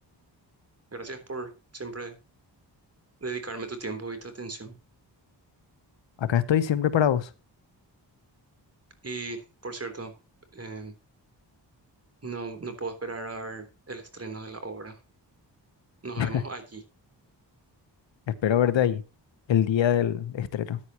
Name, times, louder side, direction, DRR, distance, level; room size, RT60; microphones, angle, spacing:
voice 1, 0.9-2.2 3.2-4.7 9.0-10.1 10.5-10.9 12.2-15.0 16.0-16.8, right 3 dB, 35° right, 3.5 m, -37 dB
voice 2, 6.2-7.3 16.2-16.4 18.4-19.0 19.5-20.8, left 10 dB, 90° left, 1.1 m, -23 dB
14.5 x 9.8 x 3.0 m
cardioid pair, 75°, 44 cm